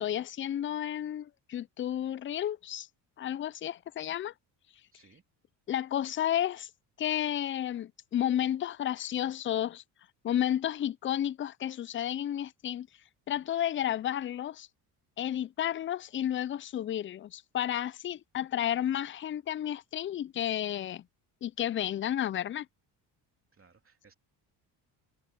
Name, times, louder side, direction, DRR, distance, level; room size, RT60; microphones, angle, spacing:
voice 1, 0.0-2.9 3.2-4.3 5.7-6.7 7.0-9.8 10.2-12.9 13.3-14.7 15.2-21.0 21.4-22.7, left 11 dB, 30° left, 0.4 m, -32 dB
voice 2, 4.9-5.2 23.5-24.1, right 5 dB, 25° right, 2.7 m, -61 dB
supercardioid pair, 75°, 47 cm